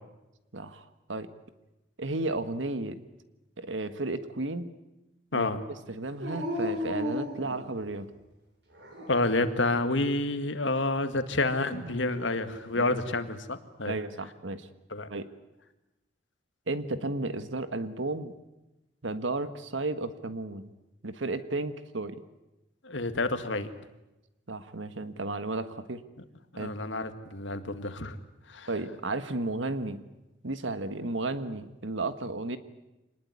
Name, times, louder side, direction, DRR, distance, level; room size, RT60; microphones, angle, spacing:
voice 1, 0.5-1.3 2.0-3.0 3.6-4.7 5.3-8.1 11.7-12.0 12.7-13.0 13.9-14.7 15.1-15.3 16.7-18.3 19.0-20.7 21.0-22.2 24.5-26.0 26.6-26.8 28.7-30.0 30.4-32.6, right 2 dB, 80° right, 11 dB, 1.6 m, -33 dB
Dog, 6.2-8.1 8.7-9.5 11.8-12.7, left 1 dB, 60° right, 6.4 m, -36 dB
voice 2, 9.1-14.0 14.9-15.1 22.8-23.7 26.6-28.2 28.5-28.7, left 2 dB, 75° left, 9 dB, 1.9 m, -29 dB
25.5 x 20.0 x 9.6 m, 0.99 s
head